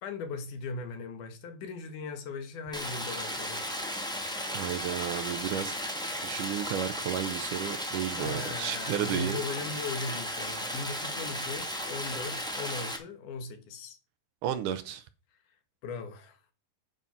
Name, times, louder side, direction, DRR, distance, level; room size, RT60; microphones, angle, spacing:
voice 1, 0.0-3.6 8.1-14.0 15.8-16.4, left 4 dB, 70° left, 2.7 m, -38 dB
Stream, 2.7-13.0, equal, 5° left, 0.3 m, -35 dB
voice 2, 4.5-5.8 6.2-9.4 14.4-15.0, right 10 dB, 75° right, 2.2 m, -33 dB
9.5 x 6.1 x 5.7 m
omnidirectional pair, 4.0 m